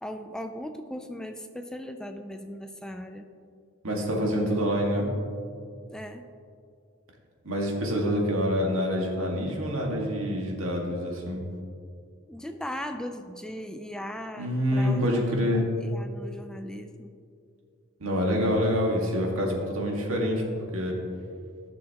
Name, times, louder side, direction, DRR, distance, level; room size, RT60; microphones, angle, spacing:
voice 1, 0.0-3.3 5.9-6.2 12.3-17.1, equal, 5° left, 6 dB, 0.3 m, -38 dB
voice 2, 3.8-5.1 7.4-11.4 14.4-15.7 18.0-20.4 20.7-21.0, equal, 80° right, -1 dB, 1.7 m, -26 dB
15.0 x 6.4 x 2.9 m, 2.3 s
head